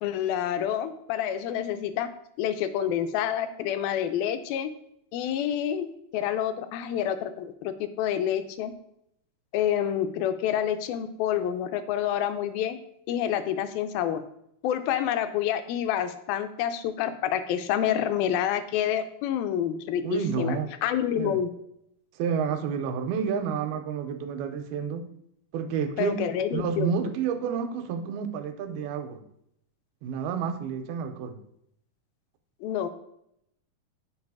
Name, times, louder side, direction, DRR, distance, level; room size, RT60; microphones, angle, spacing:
voice 1, 0.0-2.1 2.4-4.7 5.1-8.7 9.5-12.8 13.1-14.2 14.6-21.5 26.0-26.9 32.6-32.9, left 10 dB, 80° left, 10 dB, 2.3 m, -28 dB
voice 2, 20.0-20.7 21.2-21.4 22.2-25.1 25.5-26.2 26.5-29.2 30.0-31.4, right 7 dB, 85° right, 7 dB, 2.5 m, -30 dB
7.3 x 4.7 x 4.7 m, 0.76 s
omnidirectional pair, 4.3 m